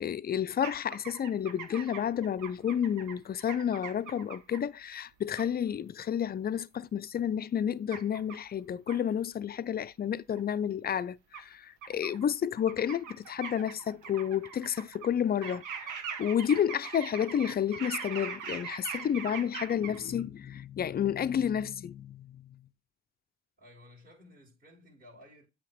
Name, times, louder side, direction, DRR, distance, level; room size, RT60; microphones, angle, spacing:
voice 1, 0.0-22.6, left 9 dB, 35° left, 0.4 m, -31 dB
sound 1, 0.6-4.6 5.4-5.5 7.9-8.4 8.9-9.0 10.4-10.5 11.3-11.4 11.8-12.3 12.6-15.1 15.4-20.2, right 6 dB, 80° right, 1.2 m, -41 dB
voice 2, 23.6-25.4, left 1 dB, 30° right, 3.1 m, -55 dB
8.3 x 2.9 x 5.0 m
cardioid pair, 90°, 30 cm